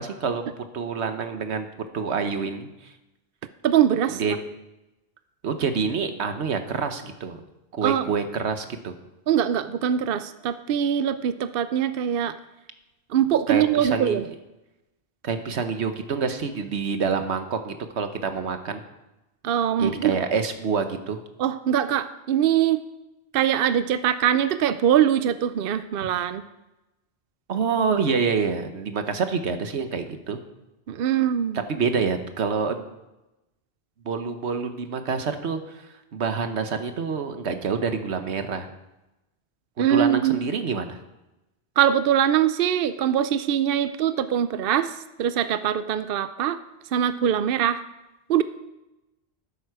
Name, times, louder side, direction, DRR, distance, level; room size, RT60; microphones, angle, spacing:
voice 1, 0.0-1.7 1.9-2.9 4.2-4.3 5.4-7.4 7.7-8.9 13.5-14.2 15.2-18.8 19.8-21.2 27.5-30.4 31.5-32.8 34.0-38.7 39.9-41.0, right 5 dB, 80° right, 8 dB, 1.3 m, -27 dB
voice 2, 3.6-4.2 7.8-8.0 9.3-12.4 13.1-14.2 19.4-20.1 21.4-22.8 23.3-26.4 30.9-31.6 39.8-40.4 41.8-46.6 46.9-47.8 48.3-48.4, right 9 dB, 65° right, 12 dB, 0.7 m, -22 dB
12.5 x 11.0 x 4.8 m, 0.98 s
omnidirectional pair, 1.1 m